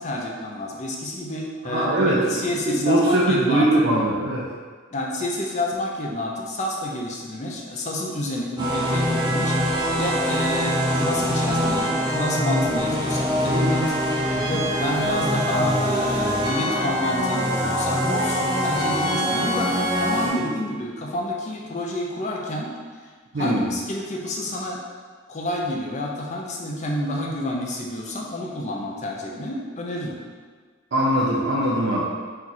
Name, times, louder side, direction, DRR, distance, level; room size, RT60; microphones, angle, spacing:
voice 1, 0.0-3.7 4.9-22.7 23.3-24.8 25.3-30.2, left 1 dB, 35° left, -1 dB, 0.6 m, -29 dB
voice 2, 1.6-4.5 14.3-14.5 20.4-20.5 23.3-23.7 30.9-32.0, right 1 dB, 65° right, -6 dB, 0.5 m, -21 dB
sound 1, 8.6-20.3, equal, 20° right, 0.9 m, -23 dB
4.3 x 2.4 x 4.0 m, 1.5 s
head